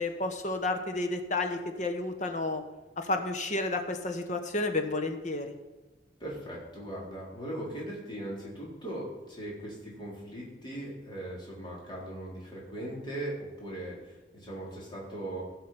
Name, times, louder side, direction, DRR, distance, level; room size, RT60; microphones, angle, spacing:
voice 1, 0.0-2.6 3.0-5.5, left 2 dB, 45° left, 6 dB, 1.3 m, -31 dB
voice 2, 6.2-15.4, right 1 dB, 25° left, -5 dB, 4.1 m, -39 dB
16.5 x 6.2 x 5.9 m, 1.2 s
head